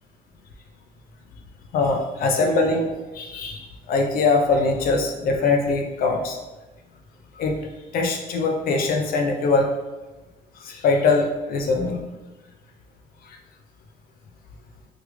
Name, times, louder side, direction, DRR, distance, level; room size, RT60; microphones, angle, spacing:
voice 1, 1.7-6.4 7.4-7.6 7.9-9.7 10.6-12.0 13.2-13.4, left 3 dB, 60° left, 3 dB, 0.4 m, -22 dB
3.2 x 2.3 x 3.2 m, 1.1 s
cardioid pair, 110°, 17 cm